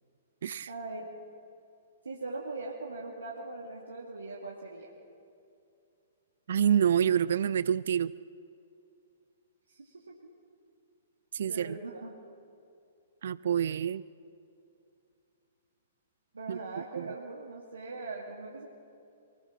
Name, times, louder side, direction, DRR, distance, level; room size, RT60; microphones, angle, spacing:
voice 1, 0.7-1.1 2.0-4.9 9.7-10.2 11.5-12.2 16.3-18.7, right 3 dB, 70° right, -3 dB, 2.4 m, -40 dB
voice 2, 6.5-8.1 11.3-11.8 13.2-14.0 16.5-16.6 17.0-17.1, right 9 dB, 55° right, 18 dB, 0.4 m, -27 dB
24.0 x 20.5 x 6.1 m, 2.5 s
figure-of-eight pair, 115°, 0 cm